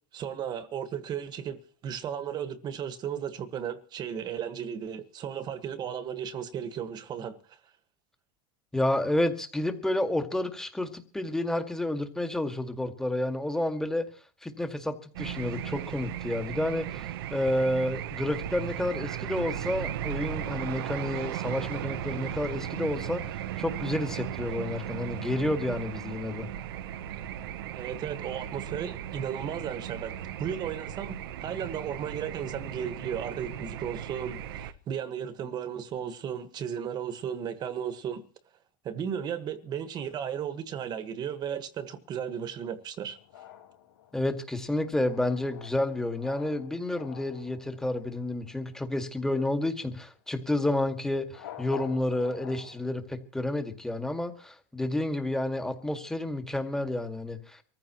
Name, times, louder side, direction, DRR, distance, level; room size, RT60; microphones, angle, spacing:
voice 1, 0.1-1.6 1.8-7.6 27.7-38.2 38.8-43.2, right 8 dB, 35° right, 1.5 m, -35 dB
voice 2, 8.7-14.1 14.4-23.2 23.6-26.5 44.1-57.6, left 1 dB, 5° left, 1.9 m, -30 dB
sound 1, 15.1-34.7, right 11 dB, 80° right, 1.0 m, -36 dB
sound 2, 43.2-48.9 51.2-52.9, left 11 dB, 90° left, 4.3 m, -48 dB
25.0 x 15.0 x 3.0 m
supercardioid pair, 130°, 12 cm